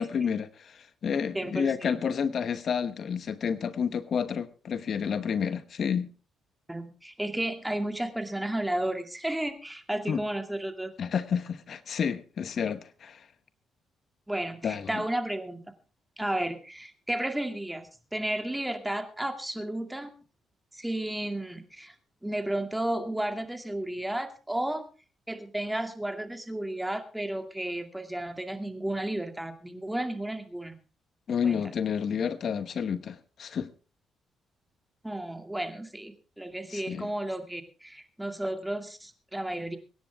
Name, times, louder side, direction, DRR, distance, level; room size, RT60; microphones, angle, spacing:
voice 1, 0.0-6.1 10.1-10.2 11.0-13.3 14.6-15.0 31.3-33.7 36.7-37.1, left 7 dB, 55° left, 13 dB, 0.9 m, -30 dB
voice 2, 1.3-2.0 6.7-10.9 14.3-15.6 16.2-20.1 20.7-21.9 22.2-24.8 25.3-30.8 31.4-31.7 35.0-39.8, right 1 dB, 5° right, 7 dB, 2.3 m, -33 dB
24.0 x 10.5 x 3.5 m, 0.35 s
cardioid pair, 90°, 0 cm